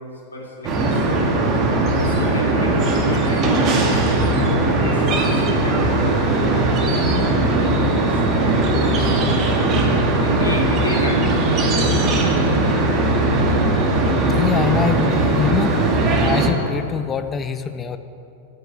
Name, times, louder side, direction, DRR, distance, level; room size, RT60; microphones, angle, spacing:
voice 1, 0.0-1.4 1.9-9.7 10.2-13.4, left 1 dB, 75° left, -1 dB, 3.0 m, -33 dB
sound 1, 0.6-16.5, right 2 dB, 35° right, 2.3 m, -19 dB
voice 2, 14.3-15.8 16.1-18.0, left 7 dB, 25° left, 11 dB, 0.7 m, -23 dB
11.0 x 10.0 x 9.1 m, 2.7 s
figure-of-eight pair, 90°, 0 cm